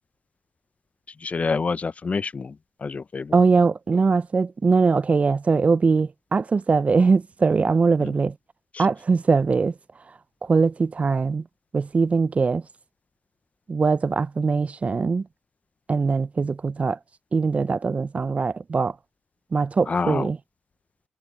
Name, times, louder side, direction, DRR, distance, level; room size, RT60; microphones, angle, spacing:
voice 1, 1.2-2.5 2.8-3.3 8.0-8.1 19.9-20.3, left 4 dB, 40° left, 0.6 m, -27 dB
voice 2, 3.3-8.4 8.8-9.7 10.4-11.4 11.7-12.6 13.7-15.3 15.9-17.0 17.3-19.0 19.5-20.4, right 4 dB, 40° right, 0.5 m, -21 dB
hypercardioid pair, 45°, 3 cm